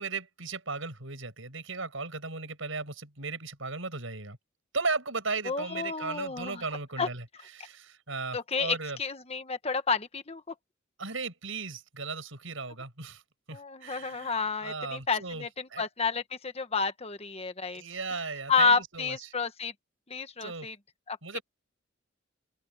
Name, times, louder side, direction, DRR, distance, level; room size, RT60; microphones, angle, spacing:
voice 1, 0.0-4.4 4.7-7.3 7.5-9.0 11.0-13.2 13.5-15.8 17.7-19.3 20.4-20.7 21.2-21.4, right 4 dB, 75° right, 6.4 m, -36 dB
voice 2, 5.4-6.6 7.0-7.1 8.3-10.4 13.5-17.8 18.5-19.7 20.1-20.7 21.1-21.4, left 5 dB, 30° left, 1.4 m, -30 dB
open air
head